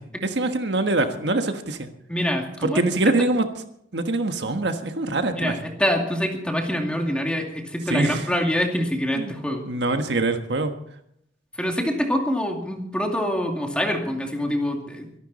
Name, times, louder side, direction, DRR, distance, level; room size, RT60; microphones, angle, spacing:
voice 1, 0.0-1.9 2.6-3.4 3.9-5.5 7.9-8.3 9.2-9.3 9.7-10.7, right 2 dB, 70° right, 7 dB, 1.4 m, -24 dB
voice 2, 2.1-3.1 5.3-9.7 11.6-15.2, equal, 5° left, 2 dB, 2.4 m, -25 dB
24.0 x 11.5 x 4.2 m, 0.73 s
head